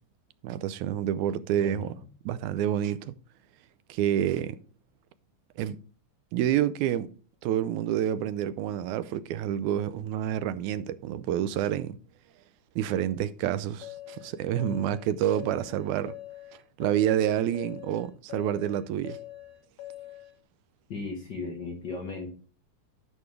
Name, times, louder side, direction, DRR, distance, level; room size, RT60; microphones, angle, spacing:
voice 1, 0.4-1.9 2.3-3.1 3.9-4.6 5.6-5.8 6.3-7.1 7.4-12.0 12.8-16.2 16.8-19.2, right 10 dB, 90° right, 2.0 m, -28 dB
voice 2, 1.6-2.1 20.9-22.3, left 4 dB, 50° left, 1.3 m, -36 dB
sound 1, 13.8-20.4, left 15 dB, 75° left, 2.7 m, -44 dB
11.0 x 6.3 x 3.3 m
omnidirectional pair, 3.4 m